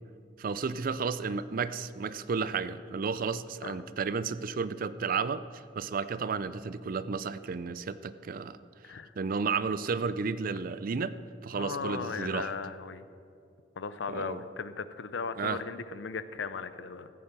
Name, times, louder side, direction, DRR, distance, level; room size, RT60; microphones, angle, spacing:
voice 1, 0.4-8.6 9.2-11.2 11.4-12.5 14.1-14.4 15.4-15.6, right 5 dB, 50° right, 15 dB, 0.4 m, -32 dB
voice 2, 11.5-13.0 13.8-17.1, left 5 dB, 80° left, 13 dB, 0.6 m, -37 dB
14.5 x 8.6 x 6.0 m, 2.5 s
head